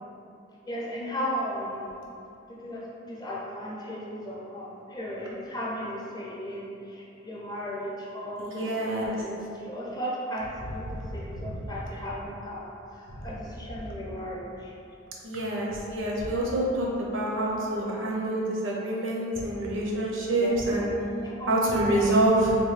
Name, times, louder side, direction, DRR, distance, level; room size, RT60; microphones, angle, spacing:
voice 1, 0.6-2.0 2.5-14.7 20.3-20.5 21.2-21.5 21.8-22.2, equal, 20° left, -5 dB, 0.6 m, -36 dB
voice 2, 8.4-9.2 10.9-11.1 11.3-11.6 13.2-13.3 15.2-20.9 21.5-22.6, right 1 dB, 75° right, -3 dB, 0.7 m, -27 dB
3.6 x 2.6 x 3.2 m, 2.7 s
head